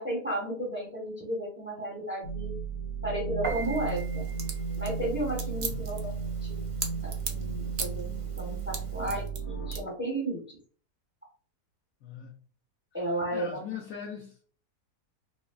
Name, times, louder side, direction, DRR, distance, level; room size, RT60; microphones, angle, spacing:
voice 1, 0.0-2.5 3.0-4.3 4.8-6.1 6.4-6.6 7.0-8.1 8.4-10.6 12.9-13.6, right 1 dB, 10° right, 0.8 m, -33 dB
sound 1, 2.2-9.8, right 5 dB, 85° left, 1.2 m, -34 dB
Piano, 3.4-9.3, right 5 dB, 60° right, 1.2 m, -43 dB
sound 2, 3.6-7.4 7.8-8.0 8.4-9.4 9.7-9.8, right 5 dB, 85° right, 0.4 m, -36 dB
voice 2, 5.6-5.9 12.0-12.4 12.9-14.5, left 8 dB, 70° left, 0.8 m, -41 dB
3.4 x 3.0 x 2.3 m
omnidirectional pair, 1.7 m